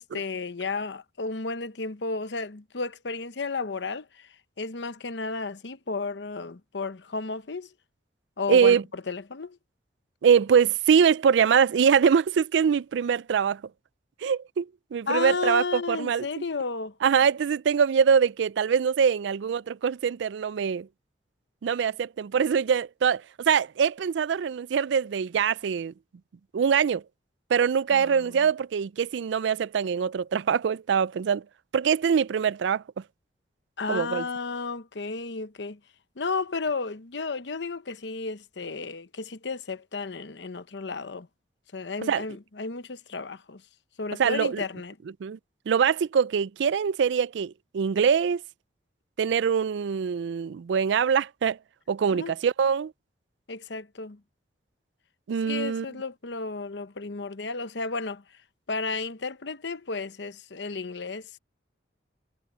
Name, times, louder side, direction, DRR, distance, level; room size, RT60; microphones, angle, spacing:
voice 1, 0.0-4.3 4.6-7.7 8.4-9.6 15.1-17.0 27.9-28.4 33.8-35.8 36.2-41.3 41.7-43.6 44.0-44.9 52.1-52.3 53.5-54.2 55.5-58.2 58.7-61.4, left 4 dB, 75° left, 0.9 m, -33 dB
voice 2, 8.5-8.8 10.2-13.6 14.2-16.3 17.0-20.9 21.6-25.9 26.5-27.0 27.5-31.4 31.7-32.8 33.9-34.2 42.1-42.2 44.2-44.6 45.2-45.4 45.7-48.4 49.2-51.6 51.9-52.9 55.3-55.9, right 7 dB, 80° right, 0.4 m, -23 dB
head